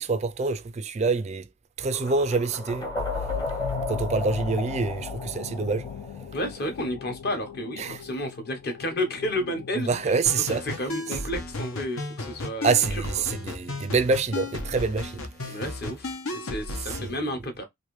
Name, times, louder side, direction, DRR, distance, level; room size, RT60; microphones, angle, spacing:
voice 1, 0.0-1.5 1.8-2.9 3.9-5.9 7.8-8.0 9.9-10.6 12.6-15.6 17.0-17.2, right 4 dB, 30° right, 0.3 m, -26 dB
sound 1, 1.9-6.8, left 2 dB, 15° left, 0.8 m, -34 dB
sound 2, 2.7-12.1, left 7 dB, 65° left, 0.3 m, -39 dB
voice 2, 6.3-10.2 10.5-13.3 15.4-17.6, left 1 dB, 50° left, 0.9 m, -32 dB
sound 3, 10.3-17.1, left 2 dB, 80° left, 1.0 m, -34 dB
3.1 x 2.6 x 3.0 m
head